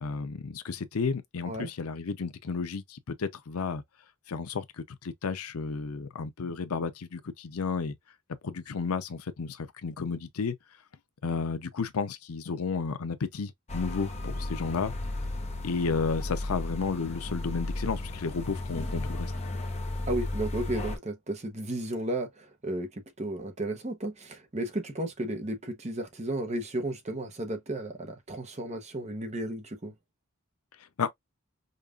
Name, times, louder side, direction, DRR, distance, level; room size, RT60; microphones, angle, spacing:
voice 1, 0.0-3.8 4.3-7.9 8.4-10.5 11.2-14.9 15.6-19.3 31.0-31.1, left 5 dB, 90° left, 0.6 m, -32 dB
sound 1, 13.7-21.0, left 2 dB, 30° left, 0.8 m, -34 dB
voice 2, 20.1-29.9, right 1 dB, 30° right, 0.8 m, -34 dB
5.2 x 2.4 x 2.3 m
head